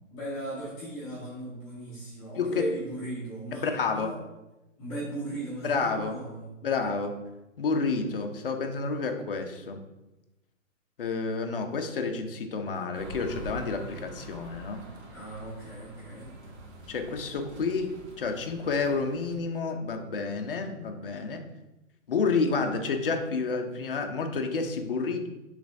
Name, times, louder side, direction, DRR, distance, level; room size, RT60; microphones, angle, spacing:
voice 1, 0.1-4.2 4.8-6.5 15.1-16.3, right 1 dB, 10° left, -11 dB, 1.0 m, -37 dB
voice 2, 3.6-4.1 5.6-6.2 6.6-7.1 7.6-9.8 11.0-14.8 16.9-17.9 18.2-21.4 22.1-25.3, left 4 dB, 45° left, 4 dB, 0.6 m, -29 dB
sound 1, 12.9-19.3, right 1 dB, 50° right, 1.0 m, -45 dB
6.3 x 3.2 x 2.6 m, 1.0 s
hypercardioid pair, 160°, 41 cm